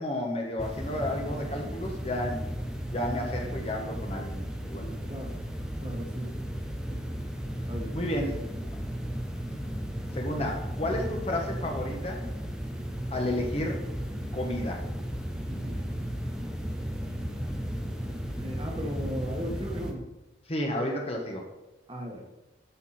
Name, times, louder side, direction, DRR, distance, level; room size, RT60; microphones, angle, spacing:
voice 1, 0.0-2.4 2.9-4.9 5.8-6.1 7.9-8.4 10.1-12.2 13.1-13.8 14.3-14.8 20.5-21.5, left 1 dB, 30° left, 1 dB, 1.4 m, -32 dB
sound 1, 0.6-19.9, equal, 5° right, 0.8 m, -35 dB
voice 2, 5.8-6.3 6.9-7.0 7.7-8.0 15.5-15.8 18.4-20.1 21.9-22.2, equal, 25° right, 0 dB, 1.5 m, -36 dB
11.0 x 6.0 x 4.3 m, 1.0 s
head